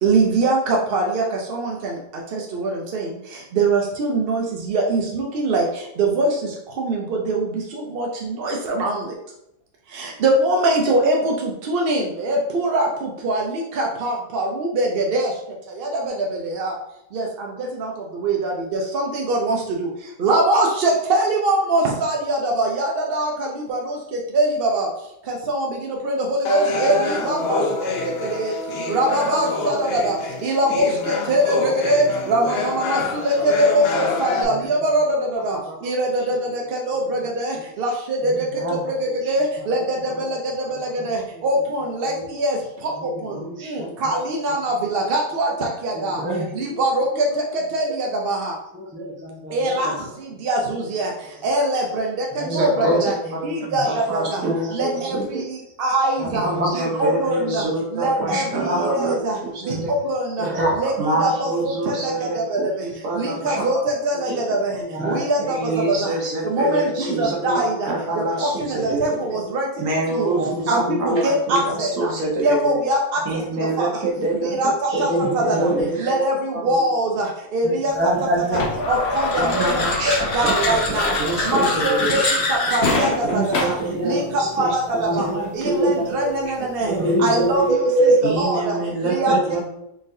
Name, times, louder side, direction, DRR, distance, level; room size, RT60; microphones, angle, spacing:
voice 1, 0.0-9.1 9.9-16.8 17.1-28.5 28.9-46.2 46.5-48.6 49.5-53.1 53.4-56.5 56.7-57.6 57.9-60.5 60.8-60.9 61.2-66.2 66.4-70.4 70.7-72.1 72.4-73.4 73.8-74.0 74.3-75.7 76.0-77.9 78.5-78.6 78.9-81.1 81.4-83.8 84.0-85.3 85.5-89.4, right 1 dB, 80° right, 0 dB, 0.5 m, -23 dB
sound 1, 26.4-34.4, left 2 dB, 90° left, 0.5 m, -27 dB
voice 2, 38.2-39.8 41.3-41.5 42.0-42.2 42.9-43.9 45.5-45.6 45.9-46.8 48.7-49.9 52.3-54.0 54.3-54.7 56.0-57.0 58.3-58.9 60.4-60.9 63.2-63.8 64.2-64.3 64.9-65.3 67.0-67.5 68.2-68.4 68.8-68.9 69.3-69.5 69.7-69.8 70.3-71.2 71.7-71.8 74.9-76.0 76.5-76.7 77.6-78.9 79.2-79.5 81.0-81.2 82.2-82.3 83.4-83.5 83.9-84.5 84.9-86.1 86.4-86.5 86.9-88.3, right 1 dB, 10° right, -4 dB, 0.5 m, -26 dB
voice 3, 52.4-52.9 53.8-55.4 56.3-59.1 59.4-59.9 61.0-63.6 64.3-64.4 65.5-67.4 67.8-69.0 69.8-70.8 71.2-72.5 73.2-74.6 74.9-75.9 79.4-80.7 81.2-82.2 83.2-86.0 88.2-89.7, right 2 dB, 60° right, -1 dB, 1.2 m, -26 dB
sound 2, 78.5-83.9, left 2 dB, 50° left, 0.8 m, -23 dB
3.9 x 3.5 x 2.6 m, 0.81 s
omnidirectional pair, 1.7 m